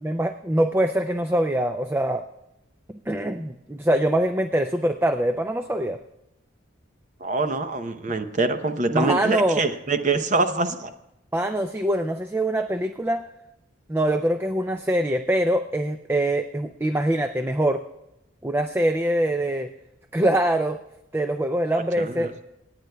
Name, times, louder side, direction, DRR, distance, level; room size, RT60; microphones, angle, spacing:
voice 1, 0.0-2.2 3.1-6.0 8.9-9.6 11.3-13.2 13.9-17.8 18.4-19.7 20.1-20.8 21.1-22.3, right 1 dB, 10° right, 7 dB, 0.4 m, -23 dB
voice 2, 7.2-10.9 21.7-22.3, right 3 dB, 35° right, 8 dB, 0.7 m, -25 dB
27.5 x 9.4 x 2.3 m, 0.87 s
head